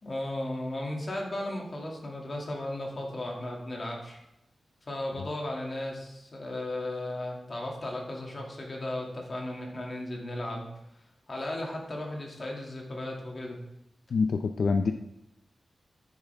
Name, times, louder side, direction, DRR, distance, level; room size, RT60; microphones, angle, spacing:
voice 1, 0.0-4.2 4.9-10.7 11.3-13.6, left 1 dB, 35° left, -1 dB, 2.4 m, -35 dB
voice 2, 14.1-14.9, left 4 dB, 70° left, 7 dB, 0.5 m, -26 dB
10.5 x 9.8 x 3.5 m, 0.86 s
wide cardioid pair, 170°, 0 cm